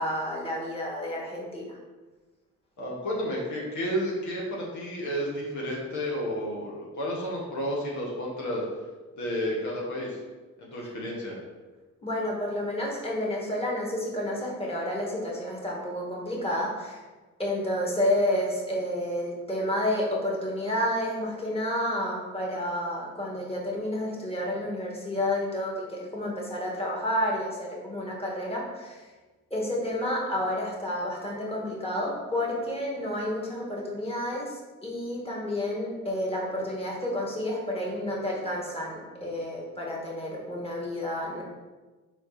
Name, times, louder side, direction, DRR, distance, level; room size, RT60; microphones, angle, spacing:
voice 1, 0.0-1.8 12.0-17.0 17.4-29.0 29.5-41.4, left 1 dB, 20° left, -3 dB, 2.0 m, -30 dB
voice 2, 2.8-8.6 9.2-10.2 10.6-11.4, equal, 70° left, -3 dB, 1.7 m, -31 dB
4.5 x 4.4 x 5.8 m, 1.3 s
cardioid pair, 90°, 30 cm